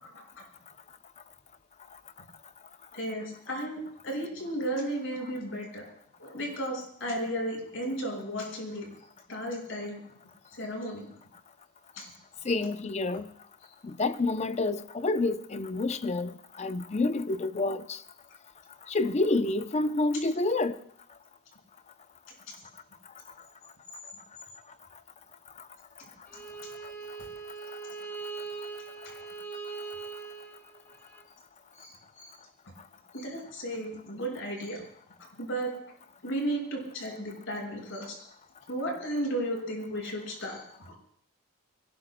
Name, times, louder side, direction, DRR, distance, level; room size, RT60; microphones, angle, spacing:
voice 1, 0.0-0.4 2.9-5.9 6.2-8.9 9.3-10.0 10.5-11.1 11.9-12.1 12.4-12.5 22.5-22.6 29.0-29.1 31.8-32.3 33.1-34.8 35.4-35.7 36.2-38.3 38.7-40.9, right 1 dB, 65° left, 5.1 m, -34 dB
voice 2, 12.5-13.3 13.8-18.0 18.9-20.8, left 2 dB, 30° left, 0.5 m, -28 dB
Bowed string instrument, 26.3-31.2, right 5 dB, 10° left, 1.8 m, -41 dB
26.0 x 18.0 x 2.2 m
head